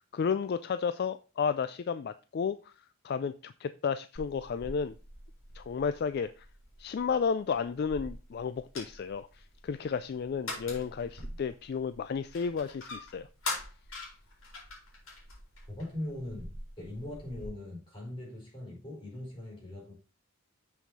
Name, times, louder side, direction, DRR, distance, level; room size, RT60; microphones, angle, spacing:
voice 1, 0.0-2.7 3.0-4.9 5.5-6.5 6.8-13.3, left 6 dB, 50° left, 0.3 m, -32 dB
sound 1, 4.1-17.5, left 2 dB, 85° left, 4.5 m, -44 dB
voice 2, 15.7-19.9, left 1 dB, 25° left, 4.6 m, -40 dB
7.2 x 6.0 x 4.1 m
head